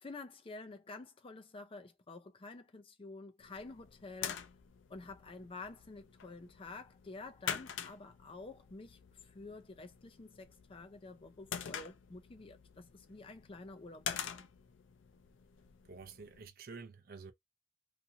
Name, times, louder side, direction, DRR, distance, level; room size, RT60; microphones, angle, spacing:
voice 1, 0.0-4.4 4.9-14.4, left 3 dB, 30° left, 0.5 m, -50 dB
sound 1, 3.4-16.5, left 8 dB, 80° left, 0.4 m, -46 dB
voice 2, 15.8-17.3, right 4 dB, 50° right, 0.5 m, -49 dB
2.6 x 2.5 x 2.7 m
head